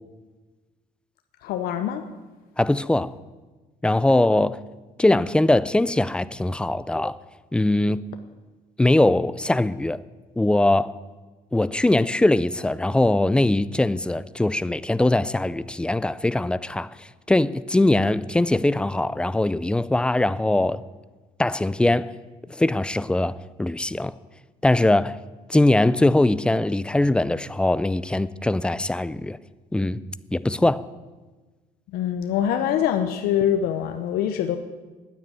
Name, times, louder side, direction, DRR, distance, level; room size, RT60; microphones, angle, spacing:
voice 1, 1.4-2.0 31.9-34.6, left 9 dB, 90° left, 0.8 m, -24 dB
voice 2, 2.6-3.1 3.8-4.6 5.0-7.2 7.5-8.0 8.8-10.0 10.4-11.0 11.5-20.8 21.4-22.1 22.5-24.1 24.6-25.2 25.5-29.4 29.7-30.0 30.3-30.8, left 2 dB, 5° left, 0.4 m, -21 dB
9.7 x 9.4 x 9.1 m
cardioid pair, 115°, 15 cm